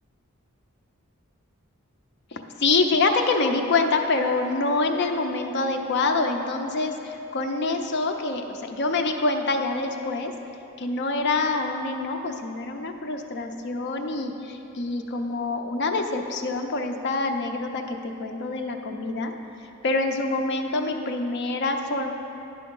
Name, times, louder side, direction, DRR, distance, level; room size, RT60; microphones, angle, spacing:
voice 1, 2.3-10.3 10.8-19.3 19.8-22.1, left 3 dB, 55° left, 4 dB, 0.5 m, -26 dB
10.0 x 3.4 x 5.4 m, 2.9 s
head